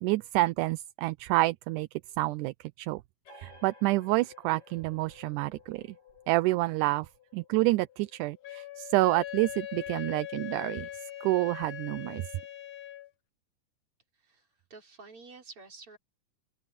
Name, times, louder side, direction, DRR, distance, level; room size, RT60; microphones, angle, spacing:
voice 1, 0.0-1.9 2.2-3.0 3.4-5.8 6.3-10.9 11.2-12.3, right 20 dB, 80° right, 2.0 m, -28 dB
sound 1, 3.2-10.5, left 5 dB, 90° left, 9.4 m, -57 dB
Wind instrument woodwind instrument, 8.4-13.1, left 12 dB, 50° left, 2.6 m, -41 dB
voice 2, 14.1-16.0, right 3 dB, 40° right, 5.3 m, -50 dB
open air
omnidirectional pair, 3.8 m